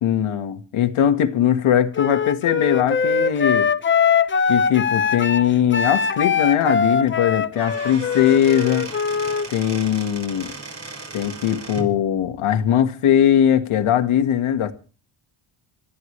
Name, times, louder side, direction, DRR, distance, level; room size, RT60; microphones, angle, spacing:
voice 1, 0.0-3.7 4.5-8.9 9.5-10.5 11.1-14.7, left 10 dB, 75° left, 1.9 m, -20 dB
Wind instrument woodwind instrument, 1.9-9.5, left 6 dB, 25° left, 0.7 m, -21 dB
Squeak / Wood, 7.4-12.0, right 3 dB, 30° right, 5.8 m, -36 dB
26.0 x 13.5 x 3.3 m
cardioid pair, 100°, 50 cm